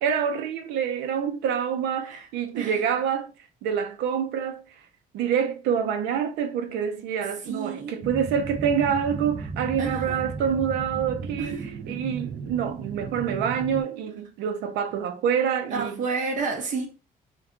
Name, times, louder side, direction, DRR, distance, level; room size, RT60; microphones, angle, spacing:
voice 1, 0.0-3.3 3.6-4.6 5.1-16.0, right 7 dB, 85° right, 0.6 m, -26 dB
voice 2, 7.5-7.9 9.8-10.2 11.4-11.7 15.7-16.9, right 4 dB, 50° right, 0.9 m, -30 dB
sound 1, 8.0-13.8, right 4 dB, 30° right, 0.5 m, -35 dB
2.3 x 2.3 x 3.6 m
cardioid pair, 110°, 17 cm